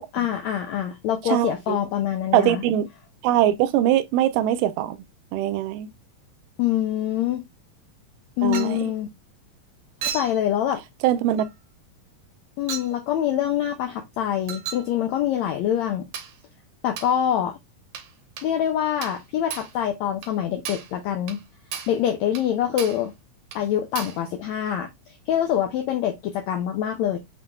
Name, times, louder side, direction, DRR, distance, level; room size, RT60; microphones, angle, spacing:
voice 1, 0.1-2.6 6.6-7.4 8.4-9.1 10.0-10.8 12.6-16.1 16.8-17.6 18.4-21.4 21.9-23.1 23.6-24.9 25.3-27.2, left 10 dB, 75° left, 1.6 m, -25 dB
voice 2, 1.3-1.8 2.3-2.9 3.2-5.0 5.3-5.9 8.4-8.8 11.0-11.5, right 12 dB, 80° right, 2.2 m, -22 dB
Chink clink, 8.5-8.8 10.0-10.4 11.4-11.5 12.7-12.9 14.5-14.9 16.1-16.4 17.0-17.2 17.9-18.1 18.4-18.5 19.0-19.2 19.5-19.7 20.2-20.3 20.6-20.9 21.3-21.4 21.7-22.0 22.3-22.5 22.8-23.1 23.5-23.6 23.9-24.2, right 8 dB, 65° right, 1.6 m, -34 dB
7.5 x 3.1 x 2.3 m
omnidirectional pair, 3.9 m